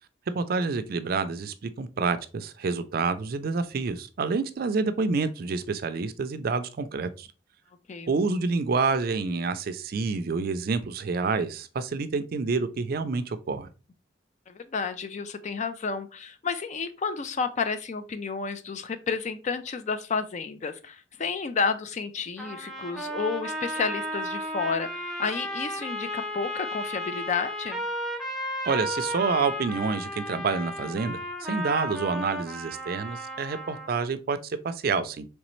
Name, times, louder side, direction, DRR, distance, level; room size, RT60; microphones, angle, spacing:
voice 1, 0.3-7.3 8.1-13.7 28.7-35.3, right 4 dB, 55° right, 0.4 m, -28 dB
voice 2, 14.5-27.8, left 5 dB, 40° left, 0.4 m, -31 dB
sound 1, 22.4-34.1, equal, ahead, 0.8 m, -34 dB
4.0 x 3.3 x 3.0 m
head